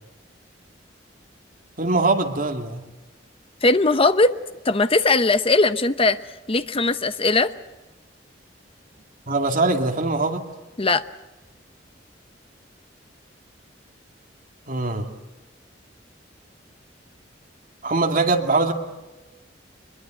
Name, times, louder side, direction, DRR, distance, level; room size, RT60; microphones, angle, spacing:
voice 1, 1.8-2.8 9.3-10.4 14.7-15.1 17.8-18.7, right 3 dB, 50° right, 3 dB, 2.4 m, -22 dB
voice 2, 3.6-4.3 4.6-6.2 6.5-7.5 10.8-11.0, left 3 dB, 30° left, 11 dB, 0.9 m, -19 dB
23.5 x 22.0 x 7.8 m, 1.1 s
head